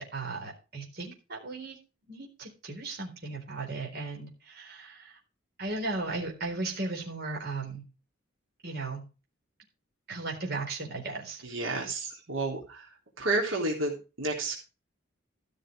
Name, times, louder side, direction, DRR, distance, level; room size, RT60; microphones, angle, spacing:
voice 1, 0.0-1.8 2.1-5.2 5.6-7.8 8.6-9.0 10.1-11.4, right 3 dB, 55° right, 0 dB, 4.0 m, -36 dB
voice 2, 11.4-12.8 13.2-14.5, right 2 dB, 80° right, -1 dB, 3.5 m, -31 dB
14.0 x 6.5 x 5.0 m, 0.31 s
head